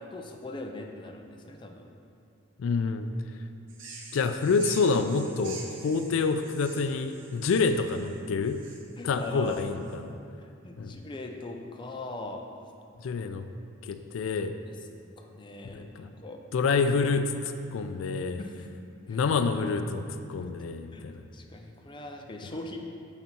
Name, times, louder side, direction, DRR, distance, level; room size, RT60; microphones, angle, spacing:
voice 1, 0.0-1.9 9.0-9.6 10.4-12.4 14.2-14.3 14.6-14.8 15.2-16.4 18.4-18.7 19.1-19.2 20.4-20.5 20.9-21.1 21.3-22.8, left 2 dB, 25° left, 3 dB, 0.4 m, -40 dB
voice 2, 2.6-3.1 4.1-8.6 9.0-10.0 10.8-11.0 13.0-13.5 13.8-14.6 15.7-16.1 16.5-18.4 19.1-21.2, left 4 dB, 85° left, 8 dB, 0.3 m, -27 dB
sound 1, 3.7-10.0, right 4 dB, 70° right, 0.7 m, -46 dB
8.0 x 4.0 x 4.3 m, 2.6 s
head